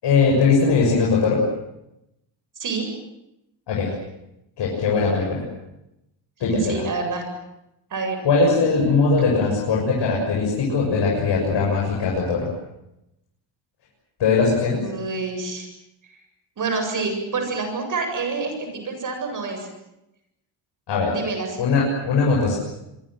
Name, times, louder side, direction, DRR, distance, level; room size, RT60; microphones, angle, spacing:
voice 1, 0.0-1.4 3.7-3.9 4.6-5.4 6.4-6.8 8.2-12.5 14.2-14.8 20.9-21.2 21.6-22.5, left 4 dB, 70° left, -3 dB, 7.3 m, -20 dB
voice 2, 6.5-7.2 7.9-8.2 9.2-9.4 14.8-15.7 16.6-19.7 21.1-21.6, right 4 dB, 45° right, 5 dB, 7.9 m, -27 dB
26.0 x 24.0 x 7.9 m, 0.86 s
wide cardioid pair, 160°, 44 cm